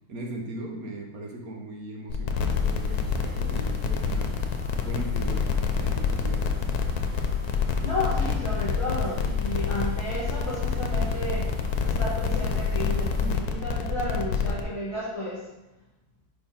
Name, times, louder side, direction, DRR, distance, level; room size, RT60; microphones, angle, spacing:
voice 1, 0.1-4.4 4.8-6.5, right 1 dB, 70° right, 1 dB, 1.5 m, -38 dB
sound 1, 2.1-14.6, left 6 dB, 85° left, 1.2 m, -27 dB
sound 2, 2.5-13.3, left 2 dB, 25° right, 1.8 m, -38 dB
voice 2, 7.8-11.5 11.8-15.4, left 1 dB, 25° left, -6 dB, 1.3 m, -32 dB
5.1 x 4.5 x 5.3 m, 0.95 s
omnidirectional pair, 1.6 m